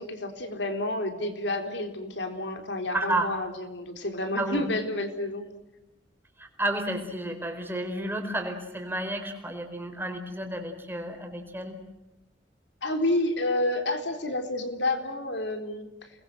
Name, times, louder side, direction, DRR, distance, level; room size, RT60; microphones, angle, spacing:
voice 1, 0.0-5.5 12.8-15.9, left 1 dB, 65° left, 6 dB, 3.9 m, -29 dB
voice 2, 2.9-3.3 4.4-4.6 6.4-11.8, right 1 dB, 10° right, 4 dB, 4.4 m, -31 dB
29.5 x 21.5 x 7.8 m, 0.97 s
head